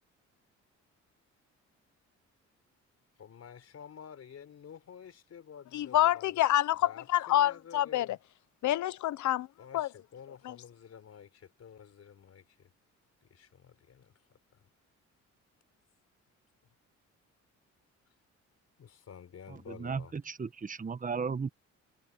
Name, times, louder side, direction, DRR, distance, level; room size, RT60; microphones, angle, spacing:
voice 1, 3.2-6.4 6.8-8.2 9.6-12.7 13.2-14.7 16.6-16.7 18.8-20.1, left 8 dB, 55° left, 4.6 m, -51 dB
voice 2, 5.7-8.1 8.6-9.5 9.7-9.9, left 13 dB, 75° left, 0.9 m, -27 dB
voice 3, 19.8-21.5, right 5 dB, 25° right, 1.3 m, -35 dB
cardioid pair, 90°, 30 cm